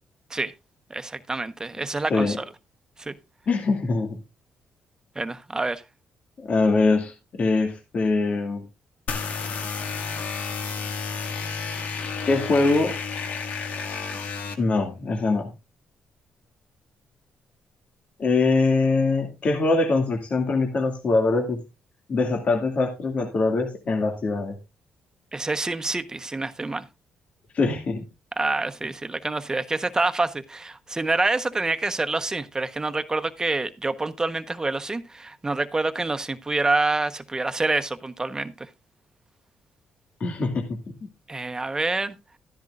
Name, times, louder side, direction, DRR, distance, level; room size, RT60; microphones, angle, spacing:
voice 1, 0.9-2.4 3.0-3.1 5.1-5.8 25.3-26.9 28.4-38.7 41.3-42.1, right 3 dB, 20° right, 1.2 m, -27 dB
voice 2, 3.5-4.2 6.5-8.6 12.3-12.9 14.6-15.5 18.2-21.6 22.1-24.6 27.5-28.0 40.2-40.7, left 3 dB, 55° left, 2.3 m, -23 dB
sound 1, 9.1-14.5, left 5 dB, 70° left, 2.1 m, -31 dB
13.5 x 10.5 x 2.6 m
supercardioid pair, 65°, 3 cm